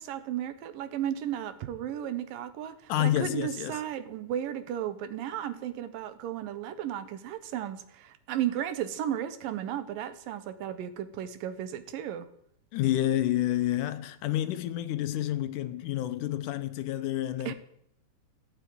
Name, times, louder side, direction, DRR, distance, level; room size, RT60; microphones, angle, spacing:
voice 1, 0.0-12.3 17.5-17.6, right 10 dB, 85° right, 2.8 m, -34 dB
voice 2, 2.9-3.8 12.7-17.5, left 13 dB, 75° left, 2.2 m, -29 dB
15.5 x 9.2 x 9.4 m
omnidirectional pair, 3.9 m